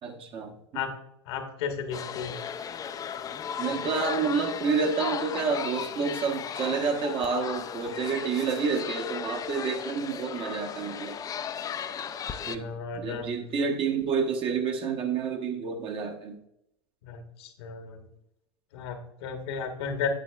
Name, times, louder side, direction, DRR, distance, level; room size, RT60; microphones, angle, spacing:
voice 1, 0.0-0.5 3.6-11.2 12.5-12.7 12.9-16.4, right 5 dB, 40° right, 3 dB, 1.0 m, -29 dB
voice 2, 1.2-2.3 12.3-13.2 17.0-18.1 18.7-20.1, left 6 dB, 65° left, 5 dB, 1.3 m, -34 dB
sound 1, 1.9-12.6, left 8 dB, 25° left, 0.4 m, -36 dB
8.8 x 8.0 x 2.3 m, 0.82 s
hypercardioid pair, 90°, 14 cm